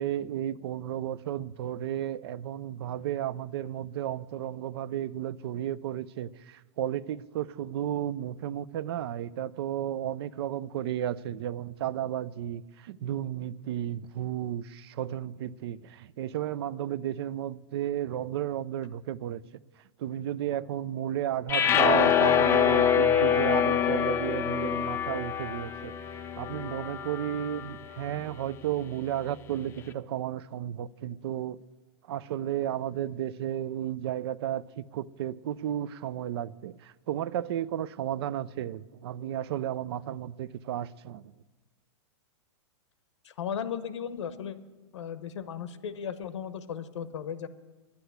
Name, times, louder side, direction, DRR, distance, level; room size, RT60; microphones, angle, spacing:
voice 1, 0.0-19.4 20.0-25.9 26.3-31.6 32.1-41.3, right 11 dB, 60° right, 0.4 m, -33 dB
sound 1, 21.5-27.8, left 8 dB, 15° left, 0.4 m, -25 dB
voice 2, 43.2-44.6 44.9-47.5, left 8 dB, 90° left, 0.9 m, -36 dB
10.0 x 9.9 x 8.0 m
supercardioid pair, 150°, 15 cm